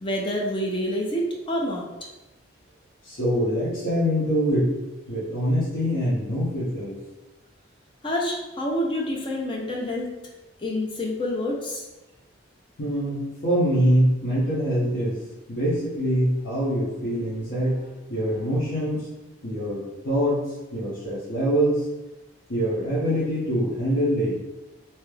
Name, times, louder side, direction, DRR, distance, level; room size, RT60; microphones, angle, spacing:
voice 1, 0.0-1.8 8.0-10.1 10.6-11.8, left 1 dB, 25° left, -1 dB, 0.5 m, -27 dB
voice 2, 3.0-4.7 5.1-7.0 12.8-15.2 15.5-19.0 19.4-20.4 20.7-21.8 22.5-24.3, equal, 65° left, -10 dB, 0.8 m, -24 dB
2.9 x 2.3 x 3.2 m, 1.1 s
head